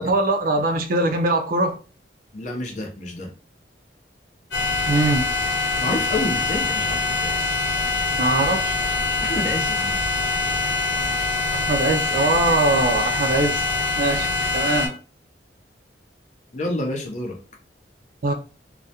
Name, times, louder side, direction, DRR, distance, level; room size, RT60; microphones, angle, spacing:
voice 1, 0.0-1.8 4.9-5.3 8.2-8.8 11.5-13.6 14.0-15.0 18.2-18.3, right 2 dB, 50° right, 0.4 m, -22 dB
voice 2, 2.3-3.3 5.6-7.3 9.2-10.0 16.5-17.4, left 2 dB, 40° left, 0.6 m, -29 dB
sound 1, 4.5-14.9, left 3 dB, 85° left, 0.8 m, -24 dB
2.3 x 2.1 x 2.7 m
head